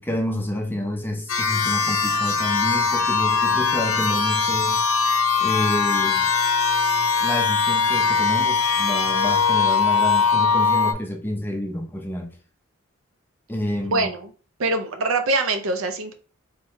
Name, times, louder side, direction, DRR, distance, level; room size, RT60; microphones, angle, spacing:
voice 1, 0.0-4.8 5.4-6.3 7.2-12.3 13.5-14.1, left 1 dB, 10° left, 0.5 m, -28 dB
sound 1, 1.3-10.9, left 5 dB, 80° left, 0.7 m, -21 dB
voice 2, 13.8-14.3 14.6-16.1, right 2 dB, 80° right, 0.6 m, -23 dB
3.3 x 2.7 x 3.5 m
head